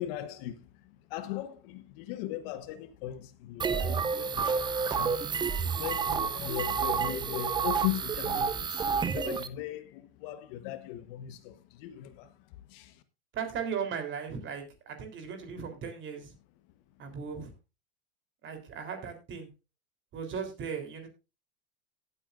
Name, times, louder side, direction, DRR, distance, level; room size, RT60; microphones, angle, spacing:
voice 1, 0.0-13.0, left 13 dB, 55° left, 1.3 m, -39 dB
sound 1, 3.6-9.5, right 6 dB, 15° right, 0.5 m, -30 dB
voice 2, 13.3-16.3 17.0-17.5 18.4-19.5 20.1-21.1, right 6 dB, 35° right, 3.6 m, -37 dB
17.5 x 8.6 x 2.5 m
supercardioid pair, 120°, 33 cm